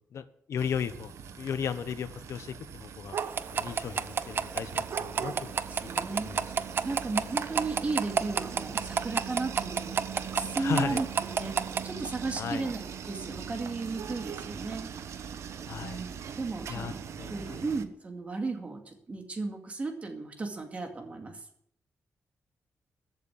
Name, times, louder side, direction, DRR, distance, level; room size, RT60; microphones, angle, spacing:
voice 1, 0.1-3.2 3.5-5.6 6.1-6.5 10.6-11.0 12.3-12.7 15.6-16.0 16.7-17.6, left 7 dB, 70° left, 12 dB, 1.1 m, -35 dB
sound 1, 0.6-17.9, right 7 dB, 70° right, 1.1 m, -41 dB
sound 2, 3.2-11.9, right 6 dB, 45° right, 0.7 m, -32 dB
voice 2, 5.7-6.3 6.8-11.1 11.3-11.5 11.8-14.9 15.8-17.0 17.3-21.4, right 3 dB, 25° right, 4 dB, 2.3 m, -35 dB
14.0 x 8.4 x 8.3 m, 0.70 s
wide cardioid pair, 165°, 5 cm